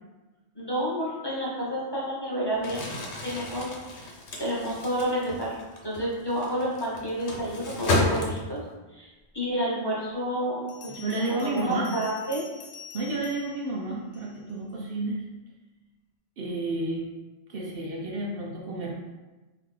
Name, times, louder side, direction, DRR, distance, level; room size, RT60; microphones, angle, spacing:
voice 1, 0.5-2.8 3.2-4.1 4.4-5.6 5.8-12.4, right 1 dB, 25° left, -7 dB, 0.7 m, -30 dB
Crumpling crinkling, 2.5-8.7, left 2 dB, 85° left, 1.0 m, -32 dB
Bell, 9.5-9.6 10.7-14.6, left 6 dB, 65° left, 0.8 m, -47 dB
voice 2, 10.9-11.9 12.9-15.2 16.4-17.1 17.5-19.0, right 2 dB, 60° right, -2 dB, 0.8 m, -31 dB
3.8 x 2.8 x 3.2 m, 1.2 s
omnidirectional pair, 1.1 m